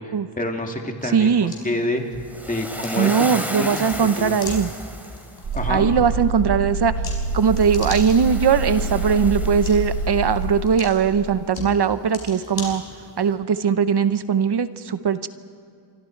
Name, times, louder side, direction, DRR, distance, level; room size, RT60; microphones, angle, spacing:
voice 1, 0.0-2.0 2.5-4.4 5.5-5.9, left 1 dB, 20° left, 2 dB, 2.5 m, -28 dB
sound 1, 1.0-13.3, left 3 dB, 90° left, 5.1 m, -39 dB
voice 2, 1.1-1.5 3.0-4.7 5.7-6.9 7.3-12.8 13.2-15.3, right 6 dB, 60° right, 12 dB, 0.9 m, -20 dB
Waves surf, 2.3-5.5 7.3-10.3, equal, 5° right, 3.0 m, -34 dB
sound 2, 5.4-10.6, right 3 dB, 80° right, 7.3 m, -26 dB
28.0 x 24.5 x 4.7 m, 2.5 s
wide cardioid pair, 105°, 44 cm